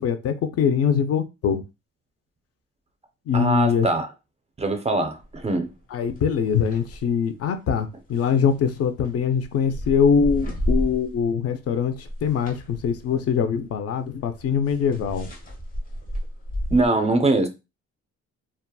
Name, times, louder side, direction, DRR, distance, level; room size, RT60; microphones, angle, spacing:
voice 1, 0.0-1.6 3.3-3.9 5.9-15.3, left 7 dB, 55° left, 0.4 m, -23 dB
voice 2, 3.3-4.1 4.6-5.7 16.7-17.5, right 2 dB, 20° right, 0.4 m, -22 dB
sound 1, 5.2-5.5 6.0-7.1 8.1-11.4 11.7-16.9, equal, 30° left, 0.8 m, -32 dB
2.7 x 2.2 x 2.2 m
cardioid pair, 90°, 30 cm